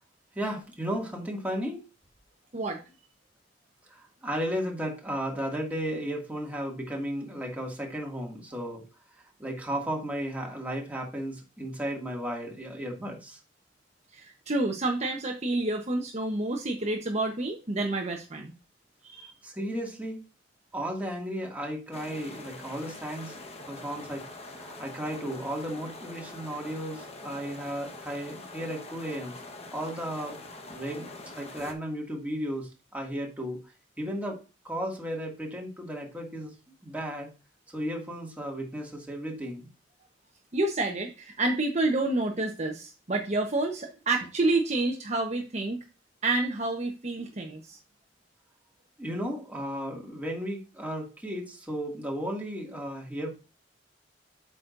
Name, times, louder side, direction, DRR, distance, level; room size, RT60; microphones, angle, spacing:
voice 1, 0.4-1.8 3.9-8.8 9.4-13.4 19.4-20.2 20.7-23.4 23.7-29.3 29.7-30.4 30.7-33.6 34.0-36.5 36.8-37.3 37.7-39.7 49.0-53.3, equal, 10° right, -1 dB, 2.1 m, -34 dB
voice 2, 14.1-18.5 19.0-19.3 40.5-45.8 46.2-47.8, right 2 dB, 40° right, 2 dB, 1.0 m, -29 dB
sound 1, 21.9-31.7, left 2 dB, 35° left, 1.2 m, -44 dB
8.4 x 6.2 x 2.6 m, 0.31 s
head